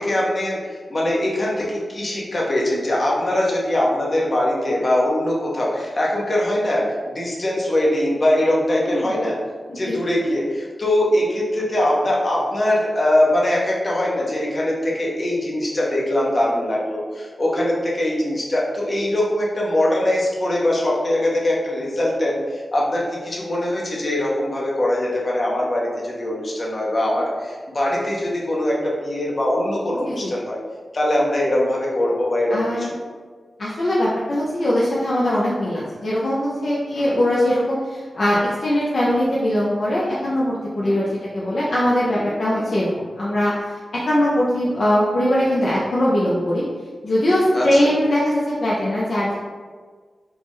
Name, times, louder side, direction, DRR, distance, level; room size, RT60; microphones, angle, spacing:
voice 1, 0.0-9.4 9.7-30.6 30.9-32.9 36.9-37.2 40.8-41.0 42.1-42.3 42.5-42.6 47.5-47.9, left 1 dB, 50° left, -4 dB, 0.8 m, -22 dB
voice 2, 32.5-32.9 33.6-46.6 47.0-49.4, left 1 dB, 70° left, -7 dB, 0.5 m, -21 dB
3.4 x 2.1 x 3.1 m, 1.5 s
cardioid pair, 40°, 0 cm